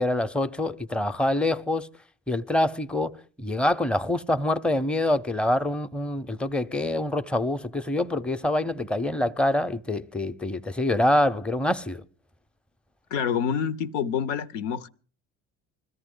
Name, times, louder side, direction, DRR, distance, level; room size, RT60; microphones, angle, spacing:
voice 1, 0.0-1.9 2.3-12.0, left 1 dB, 5° left, 0.6 m, -25 dB
voice 2, 13.1-14.9, left 7 dB, 90° left, 0.7 m, -27 dB
21.0 x 13.5 x 3.8 m
hypercardioid pair, 65°, 36 cm